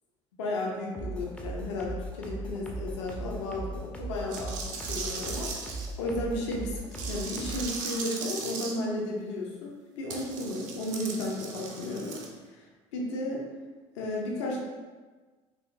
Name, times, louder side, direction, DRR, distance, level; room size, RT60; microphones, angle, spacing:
voice 1, 0.4-12.2 12.5-12.6 12.9-13.4 13.9-14.6, left 1 dB, 65° left, -2 dB, 0.5 m, -34 dB
sound 1, 0.9-7.8, right 2 dB, 5° left, 0.4 m, -38 dB
sound 2, 4.3-5.9 6.9-8.7 10.1-12.3, right 4 dB, 55° right, 0.5 m, -38 dB
2.9 x 2.4 x 2.4 m, 1.4 s
figure-of-eight pair, 60°, 16 cm